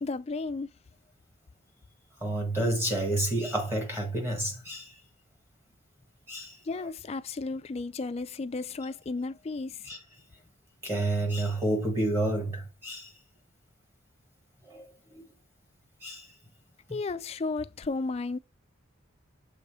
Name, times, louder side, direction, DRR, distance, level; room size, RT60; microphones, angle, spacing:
voice 1, 0.0-0.7 6.7-9.9 16.9-18.4, left 3 dB, 30° left, 0.3 m, -33 dB
voice 2, 2.2-4.9 6.3-6.6 9.8-10.0 10.8-13.1 14.7-15.2 16.0-16.3, right 1 dB, 10° right, 1.4 m, -30 dB
6.8 x 3.2 x 4.8 m
head